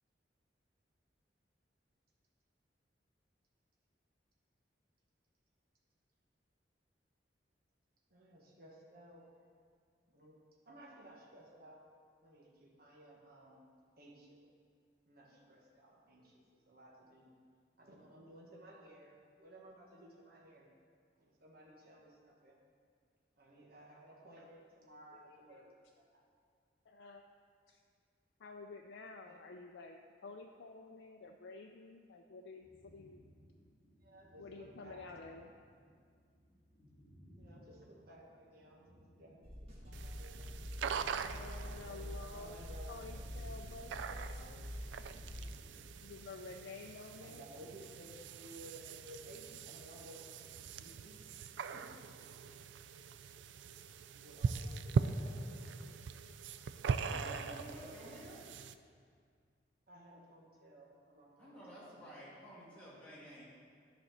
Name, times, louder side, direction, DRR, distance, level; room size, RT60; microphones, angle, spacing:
voice 1, 8.1-9.3 10.1-11.9 12.2-13.7 14.0-14.4 15.1-17.3 17.8-20.7 21.1-22.6 23.4-25.7 26.0-26.2 29.2-29.4 34.0-35.6 37.4-41.3 41.8-43.3 47.2-51.2 51.6-52.0 54.1-55.4 56.4-56.5 59.9-62.2, right 1 dB, 55° right, -2 dB, 1.2 m, -57 dB
voice 2, 25.1-25.6 26.9-27.3 27.7-27.8 28.4-33.2 34.4-35.5 41.2-42.6 42.9-44.7 45.7-47.4, left 3 dB, 80° left, 3 dB, 0.4 m, -51 dB
sound 1, 32.6-50.8, equal, 50° left, 1.8 m, -63 dB
sound 2, 39.4-45.4, equal, 35° right, 1.7 m, -46 dB
sound 3, 39.9-58.7, right 5 dB, 85° right, 0.3 m, -42 dB
voice 3, 57.0-58.4 61.4-63.4, equal, 5° left, -9 dB, 2.4 m, -51 dB
11.0 x 4.2 x 6.4 m, 2.1 s
head